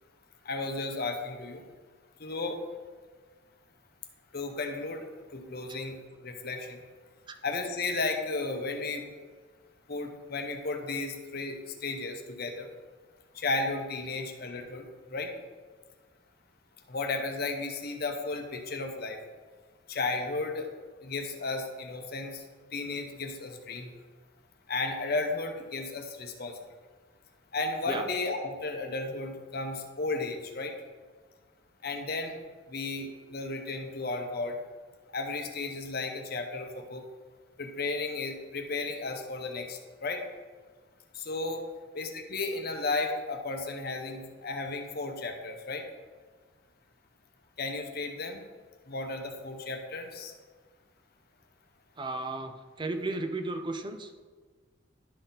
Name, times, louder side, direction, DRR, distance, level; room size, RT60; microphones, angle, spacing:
voice 1, 0.4-1.6 2.2-2.6 4.3-5.1 5.3-6.8 7.4-9.1 9.9-12.7 13.3-14.8 15.1-15.3 16.9-19.2 19.9-20.7 21.0-22.4 22.7-23.9 24.7-26.6 27.5-30.7 31.8-32.4 32.7-34.6 35.1-37.0 37.6-40.2 41.1-41.7 41.9-45.8 47.6-48.4 48.9-50.3, left 3 dB, 50° left, 4 dB, 0.8 m, -34 dB
voice 2, 52.0-54.1, right 2 dB, 25° right, 7 dB, 0.5 m, -34 dB
11.5 x 4.1 x 4.0 m, 1.4 s
head